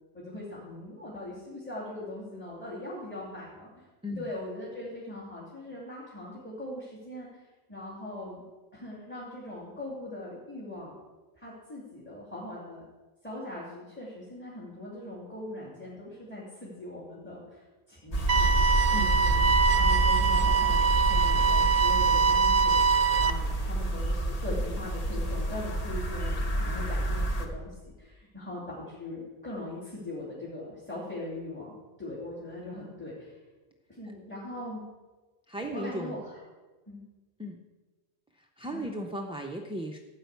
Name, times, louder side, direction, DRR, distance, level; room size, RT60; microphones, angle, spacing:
voice 1, 0.1-3.8 4.2-7.4 7.7-8.4 8.7-11.0 11.3-12.9 13.2-18.5 18.9-31.7 32.0-33.4 33.9-34.9 35.7-36.4 36.9-37.0 38.7-39.0, left 1 dB, 10° left, -7 dB, 2.5 m, -40 dB
sound 1, 18.1-27.5, right 1 dB, 40° left, 1.1 m, -28 dB
sound 2, 18.3-23.3, right 6 dB, 70° right, 0.7 m, -23 dB
voice 2, 35.5-36.2 37.4-37.6 38.6-40.0, equal, 5° right, 1 dB, 0.5 m, -35 dB
12.5 x 4.8 x 8.1 m, 1.3 s
omnidirectional pair, 1.1 m